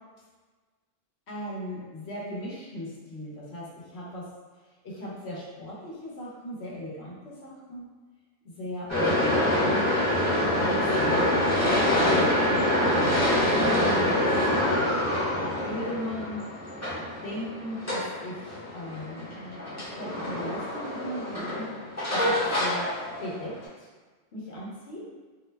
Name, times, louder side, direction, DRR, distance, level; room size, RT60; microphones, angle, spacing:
voice 1, 1.3-4.3 4.8-7.9 8.4-9.2 9.5-9.9 10.6-12.2 12.9-13.4 13.7-14.2 14.6-14.8 15.4-16.4 17.2-22.9 23.2-23.5 23.8-23.9 24.3-25.0, equal, 80° left, -5 dB, 1.1 m, -37 dB
sound 1, 8.9-23.6, left 1 dB, 20° left, 0.6 m, -26 dB
2.6 x 2.1 x 3.2 m, 1.4 s
omnidirectional pair, 1.1 m